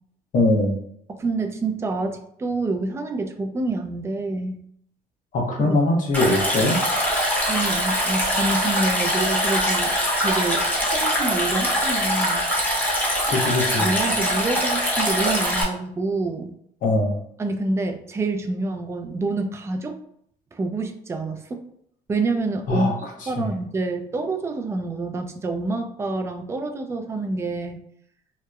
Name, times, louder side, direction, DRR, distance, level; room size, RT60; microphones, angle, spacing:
voice 1, 0.3-0.8 5.3-6.8 13.3-13.9 16.8-17.2 22.7-23.1 23.4-23.5, left 2 dB, 50° left, 1 dB, 0.8 m, -21 dB
voice 2, 1.1-4.6 5.7-5.8 7.5-9.9 10.2-12.5 13.8-16.5 17.4-20.0 20.5-21.6 22.1-27.8, right 3 dB, 15° right, 5 dB, 0.3 m, -27 dB
Stream, 6.1-15.6, equal, 10° left, 0.8 m, -23 dB
2.8 x 2.0 x 2.3 m, 0.69 s
cardioid pair, 110°, 17 cm